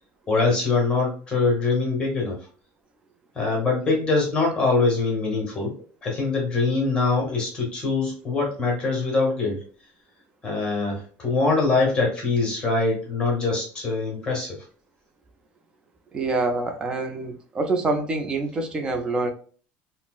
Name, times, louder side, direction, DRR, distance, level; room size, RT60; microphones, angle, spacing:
voice 1, 0.3-2.4 3.3-5.7 6.0-9.6 10.4-14.5, left 3 dB, 15° left, -1 dB, 1.1 m, -23 dB
voice 2, 16.1-19.3, right 3 dB, 15° right, 5 dB, 0.4 m, -26 dB
4.1 x 2.0 x 2.3 m, 0.42 s
cardioid pair, 175°, 5 cm